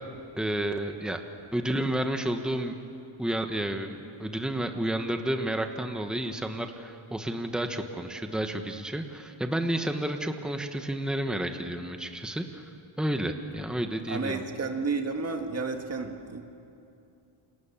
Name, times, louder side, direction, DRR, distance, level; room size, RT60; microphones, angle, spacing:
voice 1, 0.4-1.2 1.5-2.7 3.2-12.6 13.0-14.4, right 1 dB, ahead, 5 dB, 1.2 m, -31 dB
voice 2, 14.1-16.4, right 4 dB, 30° right, 4 dB, 1.9 m, -31 dB
29.0 x 26.5 x 7.3 m, 2.7 s
wide cardioid pair, 165°, 49 cm